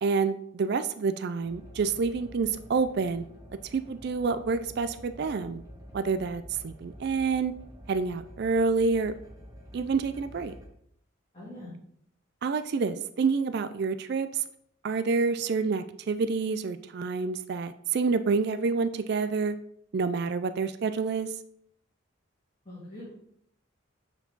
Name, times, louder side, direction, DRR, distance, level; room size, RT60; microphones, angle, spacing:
voice 1, 0.0-3.2 3.7-5.6 5.9-7.5 7.9-9.1 9.7-10.5 12.4-14.4 14.8-19.6 19.9-21.3, right 4 dB, 50° right, 12 dB, 0.3 m, -28 dB
sound 1, 1.4-10.7, equal, 15° right, 1.5 m, -48 dB
voice 2, 11.3-11.7 22.6-23.1, left 1 dB, 25° left, -11 dB, 2.9 m, -43 dB
8.1 x 4.6 x 3.9 m, 0.69 s
head